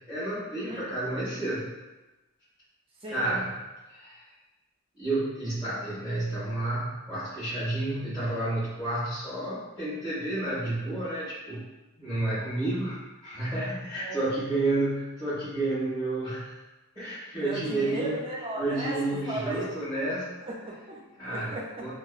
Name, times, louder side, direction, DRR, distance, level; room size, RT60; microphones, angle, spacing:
voice 1, 0.0-1.8 3.1-3.5 3.9-4.3 5.0-11.6 12.0-16.6 16.9-18.2 18.6-20.3 21.2-21.9, right 2 dB, 20° left, -17 dB, 1.3 m, -31 dB
voice 2, 3.0-3.4 14.0-14.3 17.3-19.7 20.4-21.9, right 1 dB, 25° right, -3 dB, 0.4 m, -36 dB
2.9 x 2.2 x 2.4 m, 1.1 s
head